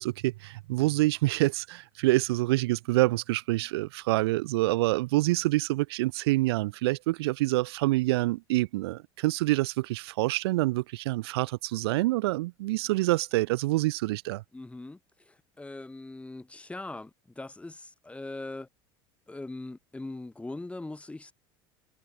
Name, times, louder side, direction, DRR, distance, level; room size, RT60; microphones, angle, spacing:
voice 1, 0.0-14.4, right 19 dB, 85° right, 2.2 m, -26 dB
voice 2, 14.5-18.7 19.3-21.3, left 2 dB, 10° left, 3.2 m, -41 dB
supercardioid pair, 110°, 13 cm